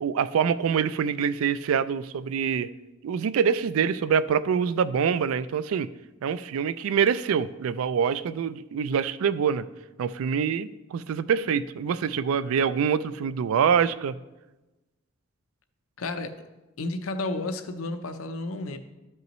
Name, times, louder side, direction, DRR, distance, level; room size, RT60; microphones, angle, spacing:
voice 1, 0.0-2.7 3.0-5.9 6.2-9.7 10.0-14.2, right 7 dB, 85° right, 15 dB, 0.3 m, -25 dB
voice 2, 16.0-16.3 16.8-18.8, left 2 dB, 85° left, 8 dB, 0.6 m, -32 dB
13.0 x 5.4 x 3.1 m, 1.1 s
head